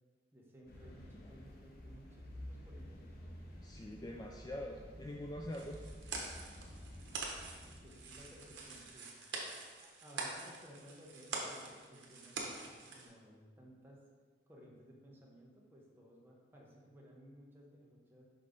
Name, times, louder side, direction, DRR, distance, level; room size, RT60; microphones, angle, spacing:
voice 1, 0.3-3.4 7.6-9.3 9.8-14.0 14.5-18.3, equal, 10° right, -3 dB, 1.0 m, -58 dB
sound 1, 0.7-8.9, equal, 55° left, 0.9 m, -52 dB
voice 2, 3.6-5.8, left 1 dB, 20° left, 0 dB, 0.3 m, -44 dB
sound 2, 5.5-13.1, right 3 dB, 80° right, 1.1 m, -45 dB
5.4 x 5.3 x 3.8 m, 1.5 s
head